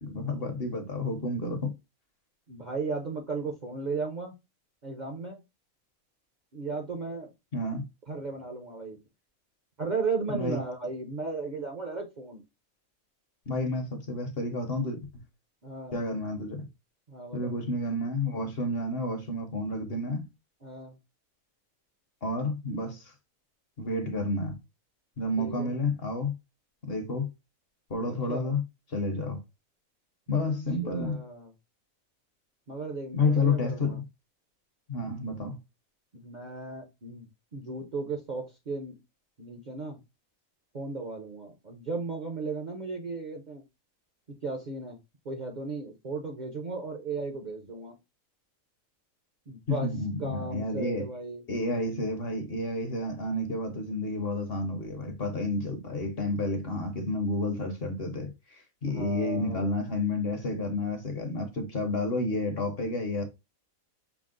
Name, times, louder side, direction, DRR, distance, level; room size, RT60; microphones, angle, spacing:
voice 1, 0.0-1.7 7.5-7.8 10.3-10.6 13.5-15.2 15.9-16.7 17.3-20.3 22.2-23.1 23.8-24.6 25.2-26.3 26.8-27.3 27.9-28.6 28.9-29.4 30.3-31.2 33.1-34.0 34.9-35.6 49.7-51.1 51.5-63.3, left 2 dB, 50° left, 1.0 m, -30 dB
voice 2, 2.5-4.3 4.8-5.4 6.5-7.3 8.1-9.0 9.8-12.4 15.6-16.0 17.1-17.5 20.6-21.0 25.4-25.7 28.1-28.6 30.8-31.5 32.7-34.0 36.1-39.0 39.4-40.0 40.7-43.6 44.4-45.0 45.2-48.0 49.5-49.9 50.2-51.4 58.9-59.7, right 4 dB, 45° right, 0.7 m, -35 dB
5.9 x 2.0 x 3.7 m
omnidirectional pair, 1.4 m